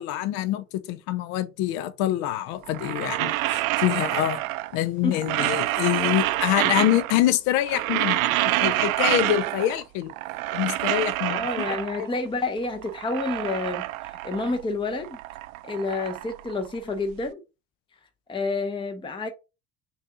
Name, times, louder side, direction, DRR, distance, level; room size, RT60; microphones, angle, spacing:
voice 1, 0.0-4.4 4.7-10.1 10.5-11.6 12.0-12.1, left 13 dB, 55° left, 0.6 m, -25 dB
sound 1, 2.6-4.8 5.1-7.3 7.6-9.8 10.1-12.2 12.6-14.6 14.9-17.1, right 17 dB, 70° right, 0.5 m, -27 dB
voice 2, 11.3-13.8 14.2-15.2 15.7-17.4 18.3-19.3, left 3 dB, 10° left, 0.7 m, -29 dB
3.2 x 2.7 x 3.7 m
figure-of-eight pair, 55°, 43 cm